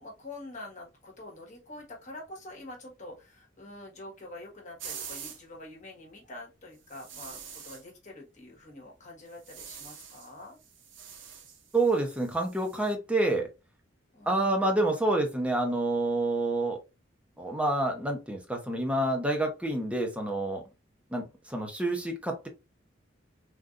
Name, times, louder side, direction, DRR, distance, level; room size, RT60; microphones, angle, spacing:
voice 1, 0.0-10.6 14.1-14.7, left 2 dB, 40° left, 1.3 m, -46 dB
sound 1, 4.8-5.4 6.9-7.8 9.3-10.3 10.6-12.9, right 7 dB, 70° right, 0.7 m, -45 dB
voice 2, 11.7-13.5 14.3-16.8 17.4-20.6 21.1-22.5, right 2 dB, 5° right, 0.7 m, -28 dB
3.6 x 2.5 x 2.4 m
head